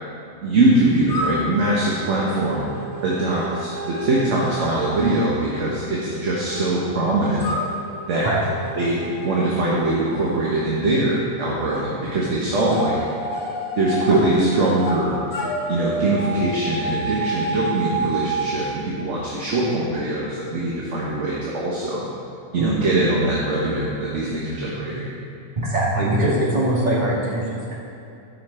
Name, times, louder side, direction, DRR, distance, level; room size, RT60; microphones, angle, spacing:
voice 1, 0.4-2.7 3.0-7.5 8.1-8.3 8.7-13.0 13.8-15.2 15.7-22.1 22.5-25.1, right 2 dB, 55° right, -5 dB, 1.5 m, -22 dB
sound 1, 1.1-6.6 7.4-11.8 12.7-15.0 15.3-18.5, right 1 dB, 70° left, 2.0 m, -30 dB
voice 2, 25.6-27.7, right 1 dB, 30° right, -9 dB, 2.6 m, -22 dB
13.5 x 5.8 x 4.3 m, 2.7 s
omnidirectional pair, 1.5 m